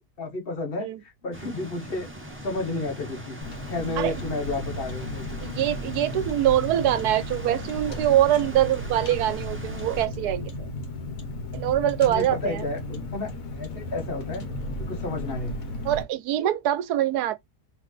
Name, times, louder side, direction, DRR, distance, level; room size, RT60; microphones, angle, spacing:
voice 1, 0.2-2.1 2.4-3.4 3.7-5.5 12.0-14.4 14.8-15.6, left 2 dB, 40° left, 1.3 m, -32 dB
sound 1, 1.3-10.1, right 1 dB, 10° right, 0.6 m, -40 dB
Car, 3.4-16.0, left 1 dB, 60° left, 1.4 m, -35 dB
voice 2, 5.4-10.7 11.5-12.6 15.8-17.3, right 12 dB, 80° right, 1.2 m, -24 dB
4.0 x 3.2 x 3.2 m
omnidirectional pair, 1.7 m